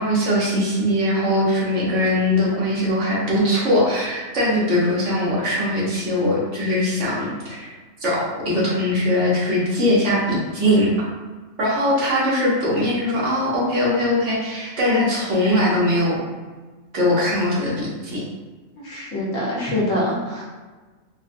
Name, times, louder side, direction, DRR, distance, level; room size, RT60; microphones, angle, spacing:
voice 1, 0.0-7.7 8.0-10.9 11.6-16.2 16.9-18.2, left 1 dB, 65° right, -5 dB, 1.2 m, -21 dB
voice 2, 18.8-20.4, left 1 dB, 75° left, -6 dB, 1.3 m, -24 dB
3.7 x 2.1 x 2.5 m, 1.3 s
omnidirectional pair, 1.3 m